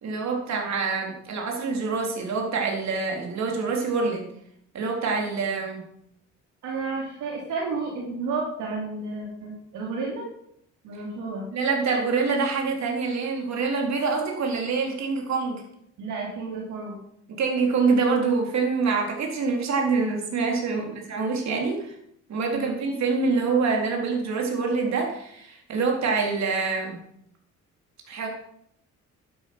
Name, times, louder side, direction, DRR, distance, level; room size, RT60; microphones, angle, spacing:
voice 1, 0.0-4.3 4.7-5.8 11.5-15.6 17.3-21.9 22.3-27.0 28.1-28.3, right 4 dB, 65° right, 0 dB, 4.0 m, -25 dB
voice 2, 6.6-10.3 10.8-11.5 16.0-17.0 20.7-21.0 22.5-22.8, right 4 dB, 85° right, -2 dB, 3.3 m, -32 dB
11.5 x 11.0 x 5.5 m, 0.70 s
cardioid pair, 90°, 30 cm